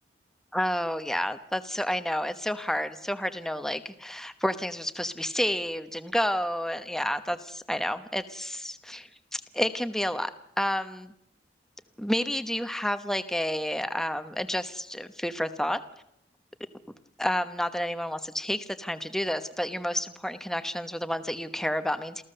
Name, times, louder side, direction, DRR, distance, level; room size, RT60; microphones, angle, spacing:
voice 1, 0.5-10.3 10.6-11.1 12.0-15.8 17.2-22.2, equal, 5° left, 10 dB, 1.0 m, -30 dB
28.0 x 15.0 x 6.7 m, 0.79 s
head